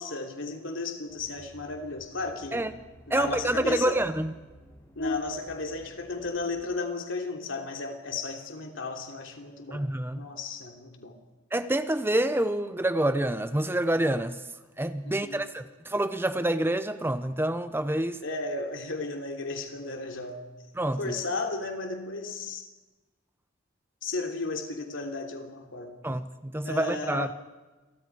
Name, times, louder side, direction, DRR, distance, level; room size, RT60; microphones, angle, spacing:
voice 1, 0.0-2.7 3.1-4.0 4.9-9.8 10.1-11.1 15.0-15.5 18.2-20.4 21.0-22.7 24.0-25.9 26.6-27.3, left 3 dB, 65° left, 3.3 m, -34 dB
sound 1, 1.1-6.6, equal, 15° left, 5.7 m, -52 dB
voice 2, 3.1-4.3 9.7-10.3 11.5-14.4 14.8-18.2 20.8-21.1 26.0-27.3, right 1 dB, 10° right, 0.7 m, -27 dB
29.0 x 24.0 x 4.9 m
head